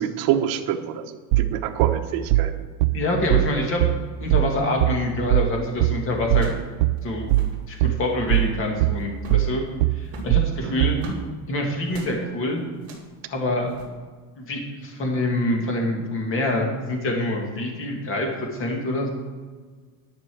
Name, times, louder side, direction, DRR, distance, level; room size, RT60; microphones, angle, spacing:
voice 1, 0.0-2.7 10.6-11.0, right 10 dB, 55° right, 6 dB, 1.1 m, -27 dB
sound 1, 1.3-11.1, right 16 dB, 80° right, 0.6 m, -21 dB
voice 2, 2.9-3.9 4.2-6.5 7.0-7.3 7.7-9.6 9.9-11.0 11.5-12.6 13.3-13.7 14.4-19.1, left 1 dB, 30° left, 1 dB, 2.2 m, -26 dB
sound 2, 5.3-5.6 6.3-6.7 7.0-7.1 7.2-7.6 8.1-8.6 9.1-9.5 10.0-11.3 11.9-12.2 12.8-13.1 13.7-13.9, right 2 dB, 35° right, 2.8 m, -39 dB
11.0 x 5.9 x 7.6 m, 1.5 s
cardioid pair, 160°, 42 cm